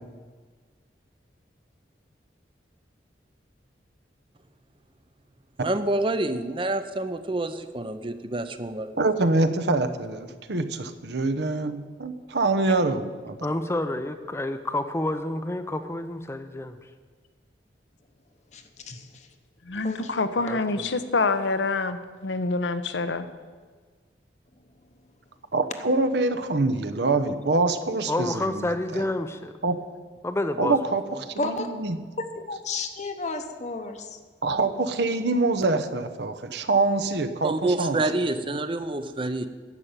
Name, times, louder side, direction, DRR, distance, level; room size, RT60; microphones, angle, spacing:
voice 1, 5.6-9.0 37.4-39.5, right 2 dB, 30° right, 11 dB, 0.6 m, -27 dB
voice 2, 9.0-13.4 25.5-28.7 29.6-29.8 30.6-31.0 31.4-32.0 34.4-38.0, right 3 dB, 65° right, 9 dB, 0.8 m, -25 dB
voice 3, 13.4-16.8 20.5-20.9 28.1-29.5 30.2-30.7, left 1 dB, 15° left, 8 dB, 0.5 m, -29 dB
voice 4, 18.5-19.3 19.8-20.1 31.4-31.7 32.2-34.2, left 3 dB, 40° left, 6 dB, 0.9 m, -32 dB
voice 5, 19.7-23.3, left 3 dB, 80° left, 10 dB, 0.9 m, -26 dB
11.0 x 6.7 x 8.9 m, 1.5 s
head